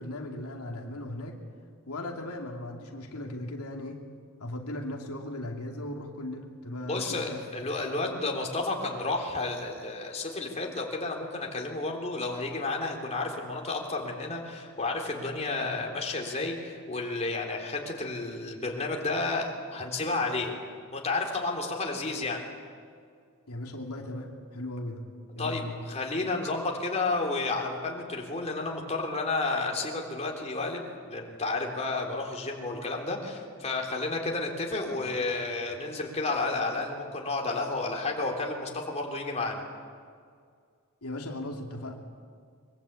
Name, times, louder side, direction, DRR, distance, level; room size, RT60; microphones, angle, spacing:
voice 1, 0.0-1.4 1.9-4.0 4.4-7.4 23.5-25.1 25.3-25.7 41.0-42.0, left 1 dB, 85° left, 1 dB, 2.7 m, -37 dB
voice 2, 6.8-20.5 20.9-22.4 25.4-39.6, left 3 dB, 30° left, 0 dB, 3.5 m, -31 dB
23.5 x 23.5 x 8.5 m, 2.1 s
head